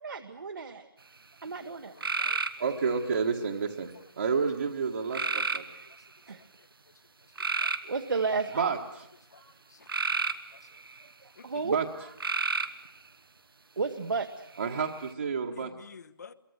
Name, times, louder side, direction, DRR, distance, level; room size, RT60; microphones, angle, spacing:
voice 1, 0.0-0.9 1.4-1.9 6.3-6.4 7.8-8.7 9.4-9.5 11.2-11.8 13.8-14.3, right 4 dB, 65° right, 6 dB, 1.4 m, -32 dB
voice 2, 1.4-2.4 5.9-6.0 7.6-7.7 9.3-9.4 9.7-9.9 10.5-10.6 11.4-11.6 15.5-16.3, left 6 dB, 50° left, 12 dB, 1.1 m, -51 dB
sound 1, 2.0-3.0 5.1-5.9 7.4-8.6 9.9-11.0 12.2-12.9 14.6-15.1, right 4 dB, 90° right, 1.4 m, -31 dB
voice 3, 2.6-5.9 8.5-9.0 11.6-11.9 14.6-15.7, right 5 dB, 50° right, 0 dB, 1.6 m, -30 dB
24.0 x 23.0 x 8.0 m, 0.81 s
hypercardioid pair, 170°, 12 cm